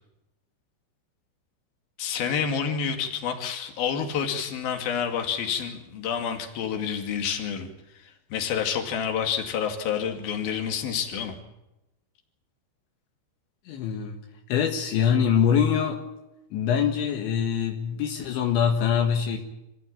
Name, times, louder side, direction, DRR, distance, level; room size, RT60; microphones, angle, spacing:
voice 1, 2.0-7.7 8.3-11.4, left 7 dB, 55° left, 4 dB, 3.9 m, -28 dB
voice 2, 13.7-14.2 14.5-16.0 16.5-19.4, left 8 dB, 75° left, 2 dB, 3.9 m, -24 dB
27.0 x 15.0 x 8.8 m, 0.92 s
omnidirectional pair, 5.4 m